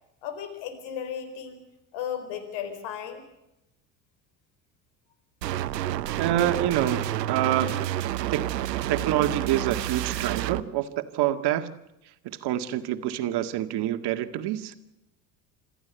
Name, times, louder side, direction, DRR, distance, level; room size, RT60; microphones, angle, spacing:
voice 1, 0.2-1.6 1.9-3.2, left 8 dB, 65° left, 8 dB, 4.5 m, -35 dB
sound 1, 5.4-10.6, right 13 dB, 85° right, 0.9 m, -29 dB
voice 2, 6.2-7.7 8.3-8.6 8.9-10.9 11.1-11.7 12.2-14.7, right 12 dB, 55° right, 9 dB, 2.0 m, -26 dB
27.0 x 14.5 x 8.2 m, 0.89 s
hypercardioid pair, 70°, 48 cm